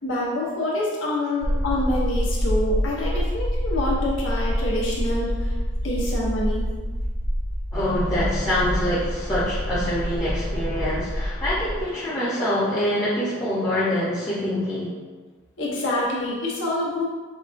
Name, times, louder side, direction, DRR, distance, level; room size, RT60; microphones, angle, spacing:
voice 1, 0.0-5.6 5.8-6.7 15.6-17.0, left 1 dB, 90° left, -5 dB, 0.9 m, -26 dB
sound 1, 1.4-11.8, equal, 40° right, 0.6 m, -26 dB
voice 2, 7.7-14.9, left 1 dB, 15° left, -11 dB, 0.6 m, -25 dB
4.8 x 2.3 x 2.5 m, 1.3 s
head